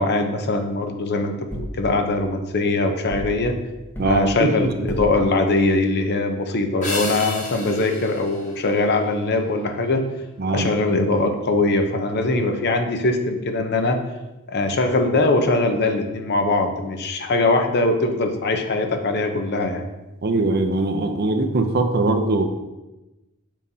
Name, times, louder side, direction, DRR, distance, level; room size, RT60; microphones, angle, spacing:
voice 1, 0.0-3.6 4.0-10.0 10.5-14.0 14.5-19.8, left 2 dB, 50° left, 6 dB, 0.7 m, -21 dB
sound 1, 1.5-1.8 3.1-3.4 3.9-4.2 4.9-5.2, equal, 10° left, 0.8 m, -31 dB
voice 2, 4.0-4.9 10.4-10.7 20.2-22.5, right 2 dB, 45° right, 6 dB, 0.6 m, -21 dB
sound 2, 6.8-9.4, left 2 dB, 35° left, 1.7 m, -33 dB
7.3 x 5.4 x 2.8 m, 1.0 s
head